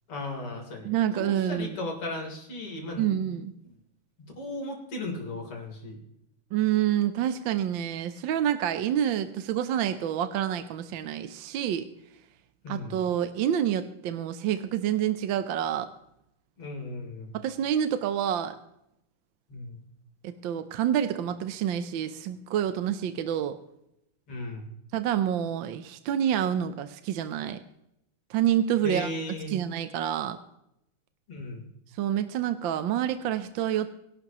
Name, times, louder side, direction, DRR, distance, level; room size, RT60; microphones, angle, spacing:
voice 1, 0.1-3.2 3.7-3.8 4.4-6.0 12.6-13.0 16.6-17.3 19.5-19.8 24.3-24.7 28.8-29.6 31.3-31.6, left 2 dB, 90° left, 0 dB, 4.4 m, -36 dB
voice 2, 0.8-1.8 3.0-3.5 6.5-11.9 12.7-15.9 17.3-18.6 20.2-23.6 24.9-27.6 28.3-29.1 29.5-30.4 32.0-33.9, right 10 dB, 70° right, 10 dB, 1.4 m, -28 dB
23.0 x 11.5 x 3.0 m, 0.80 s
omnidirectional pair, 2.4 m